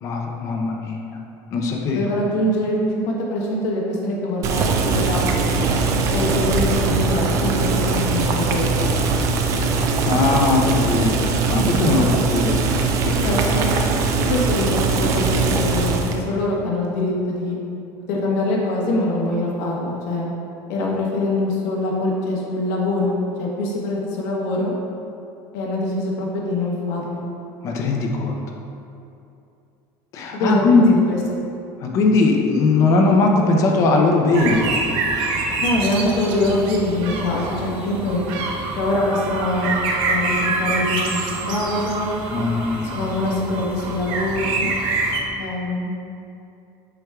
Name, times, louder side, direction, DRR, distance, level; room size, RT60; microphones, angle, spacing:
voice 1, 0.0-1.2 1.5-2.1 10.0-11.2 11.5-12.7 13.1-13.6 27.6-28.4 30.1-31.0 31.8-34.7 42.3-43.0, left 3 dB, 35° left, 1 dB, 0.6 m, -19 dB
voice 2, 1.9-5.5 6.1-8.9 11.5-11.9 13.2-13.6 14.3-17.6 18.1-20.3 20.7-24.7 25.5-27.3 30.3-30.8 31.1-31.2 35.6-38.2 38.8-39.7 40.1-42.1 42.9-44.7 45.4-45.9, left 1 dB, 70° left, -3 dB, 1.3 m, -24 dB
Boiling, 4.4-16.2, right 3 dB, 35° right, 0.4 m, -21 dB
sound 1, 34.3-45.2, right 3 dB, 55° right, 0.8 m, -26 dB
7.9 x 6.0 x 2.3 m, 2.6 s
cardioid pair, 180°, 9 cm